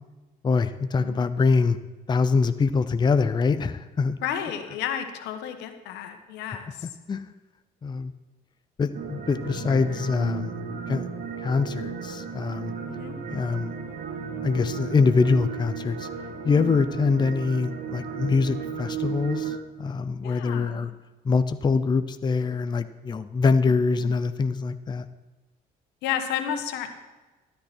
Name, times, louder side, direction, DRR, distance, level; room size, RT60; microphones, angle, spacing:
voice 1, 0.4-1.8 2.1-4.1 7.1-7.3 7.8-8.1 8.8-10.5 10.9-11.0 11.4-12.7 13.3-13.7 14.4-16.1 16.4-20.9 21.2-25.1, left 4 dB, 25° left, 11 dB, 0.7 m, -24 dB
voice 2, 4.2-6.9 9.7-10.1 12.9-13.2 16.6-16.8 20.2-20.9 26.0-26.9, left 9 dB, 90° left, 7 dB, 1.6 m, -33 dB
sound 1, 8.9-19.6, right 6 dB, 50° right, 1.8 m, -34 dB
13.0 x 13.0 x 4.4 m, 1.2 s
cardioid pair, 110°, 17 cm